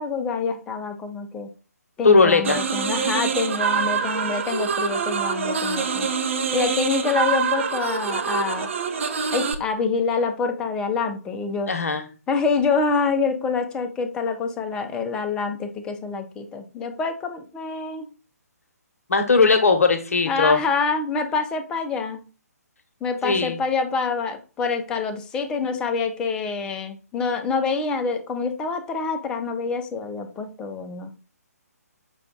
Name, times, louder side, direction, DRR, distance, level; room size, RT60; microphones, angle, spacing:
voice 1, 0.0-1.5 2.0-6.1 6.5-8.7 9.3-11.7 12.3-18.1 20.3-22.2 23.0-31.1, left 4 dB, 10° left, 7 dB, 0.4 m, -26 dB
voice 2, 2.0-2.6 11.7-12.1 19.1-20.6 23.2-23.6, left 4 dB, 60° left, 8 dB, 0.9 m, -18 dB
sound 1, 2.4-9.5, right 6 dB, 50° right, 0.6 m, -25 dB
5.7 x 2.2 x 3.8 m, 0.35 s
figure-of-eight pair, 140°, 9 cm